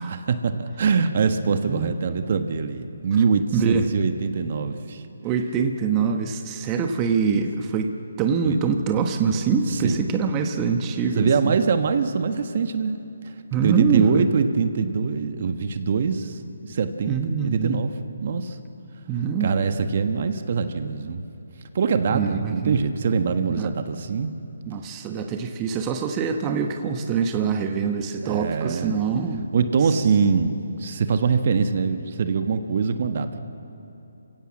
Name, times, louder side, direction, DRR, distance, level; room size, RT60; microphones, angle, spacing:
voice 1, 0.0-5.0 8.4-8.6 9.7-10.1 11.2-13.0 13.6-17.2 17.4-17.9 18.2-18.6 19.4-21.2 21.7-24.3 28.2-29.0 29.5-33.4, right 5 dB, 50° right, 8 dB, 1.2 m, -23 dB
voice 2, 3.5-3.9 5.2-11.6 13.5-14.3 17.1-17.8 19.1-19.6 22.1-22.8 23.5-23.7 24.7-29.5 29.8-30.0, right 6 dB, 20° right, 5 dB, 1.1 m, -24 dB
28.0 x 16.5 x 7.5 m, 3.0 s
figure-of-eight pair, 155°, 0 cm